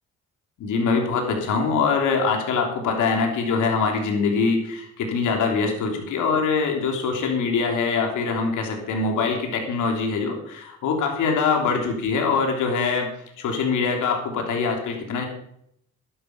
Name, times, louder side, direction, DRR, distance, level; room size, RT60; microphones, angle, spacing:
voice 1, 0.6-13.1 13.4-15.3, left 4 dB, 80° left, 2 dB, 3.2 m, -23 dB
12.0 x 11.0 x 5.3 m, 0.73 s
cardioid pair, 90°, 30 cm